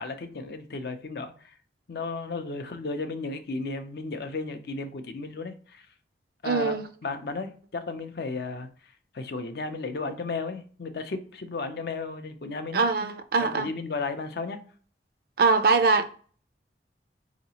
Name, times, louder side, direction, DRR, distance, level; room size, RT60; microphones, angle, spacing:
voice 1, 0.0-1.6 1.9-5.9 6.4-6.7 7.0-12.9 13.4-14.6, left 3 dB, 60° left, 0.5 m, -34 dB
voice 2, 6.4-6.8 12.7-13.7 15.4-16.1, right 4 dB, 55° right, 0.4 m, -22 dB
3.9 x 2.9 x 2.7 m
head